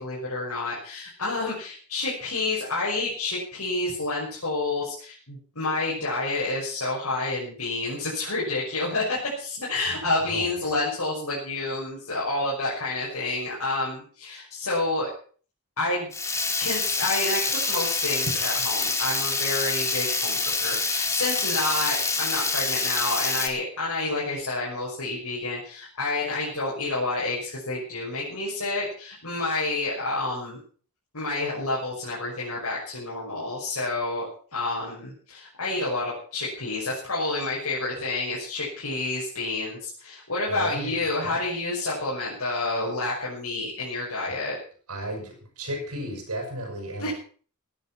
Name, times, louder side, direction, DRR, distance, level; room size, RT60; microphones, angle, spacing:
voice 1, 0.0-15.1 15.8-16.1 16.6-30.6 31.1-44.6 47.0-47.1, left 2 dB, 80° left, -6 dB, 6.3 m, -29 dB
voice 2, 9.9-10.7 40.5-41.0 41.2-41.4 44.3-44.4 44.9-47.1, right 1 dB, 85° right, 1 dB, 6.9 m, -35 dB
Water tap faucet / Liquid, 16.1-23.5, left 3 dB, 15° left, 2.1 m, -26 dB
17.0 x 10.5 x 5.9 m, 0.43 s
head